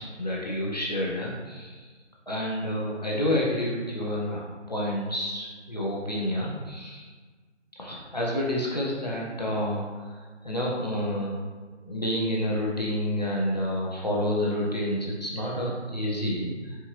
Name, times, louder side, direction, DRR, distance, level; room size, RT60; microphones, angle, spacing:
voice 1, 0.0-1.8 2.3-7.1 7.8-10.2 10.4-11.3 11.8-16.8, left 1 dB, 35° left, -4 dB, 0.7 m, -29 dB
4.5 x 3.5 x 3.0 m, 1.4 s
figure-of-eight pair, 160°, 36 cm